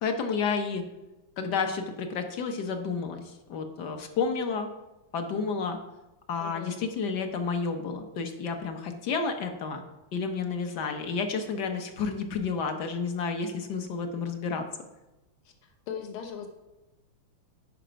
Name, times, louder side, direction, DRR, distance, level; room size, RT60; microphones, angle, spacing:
voice 1, 0.0-0.8 1.4-3.2 3.5-4.7 5.1-5.8 6.3-9.8 10.1-14.6, left 5 dB, 60° left, 6 dB, 1.3 m, -30 dB
voice 2, 6.4-6.8 15.6-16.5, left 7 dB, 75° left, 4 dB, 1.9 m, -39 dB
10.0 x 5.0 x 5.1 m, 1.0 s
omnidirectional pair, 2.3 m